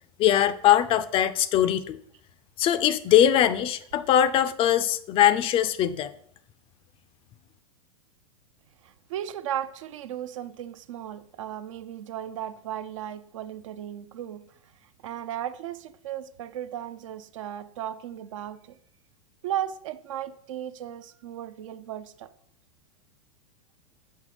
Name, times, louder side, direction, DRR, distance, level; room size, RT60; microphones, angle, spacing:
voice 1, 0.2-2.0 2.6-6.1, left 11 dB, 30° left, 0.4 m, -21 dB
voice 2, 9.1-14.4 15.0-18.8 19.4-22.3, right 11 dB, 65° right, 0.5 m, -35 dB
6.4 x 3.4 x 4.9 m
hypercardioid pair, 100°, 18 cm